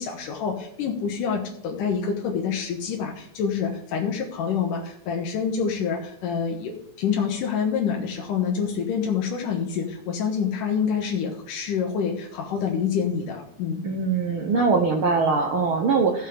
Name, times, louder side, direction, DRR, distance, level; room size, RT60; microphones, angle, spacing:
voice 1, 0.0-13.8, left 6 dB, 85° left, 0 dB, 2.8 m, -27 dB
voice 2, 13.8-16.3, right 4 dB, 65° right, 2 dB, 1.3 m, -22 dB
16.0 x 7.2 x 3.6 m, 0.69 s
omnidirectional pair, 3.6 m